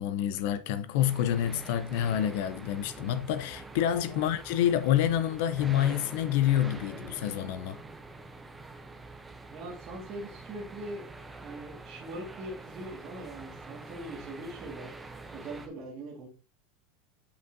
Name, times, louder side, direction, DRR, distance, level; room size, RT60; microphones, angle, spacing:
voice 1, 0.0-7.8, left 11 dB, 55° left, 0.3 m, -28 dB
sound 1, 1.0-15.7, right 3 dB, 5° right, 0.6 m, -45 dB
voice 2, 9.5-11.1 11.4-14.9 15.3-16.3, right 1 dB, 30° right, 1.6 m, -41 dB
8.0 x 5.2 x 2.5 m
supercardioid pair, 170°, 0 cm